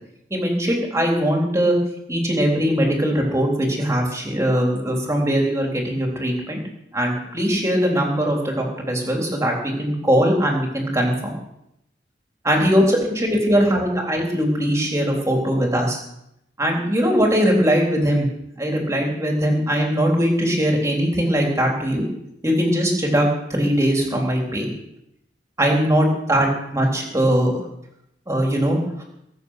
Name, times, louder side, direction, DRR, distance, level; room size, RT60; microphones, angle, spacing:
voice 1, 0.3-1.8 2.1-6.6 6.9-11.3 12.4-16.0 16.6-18.3 18.6-22.1 22.4-24.7 25.6-27.5 28.3-29.0, equal, 15° right, 0 dB, 3.6 m, -20 dB
21.5 x 7.6 x 6.5 m, 0.79 s
head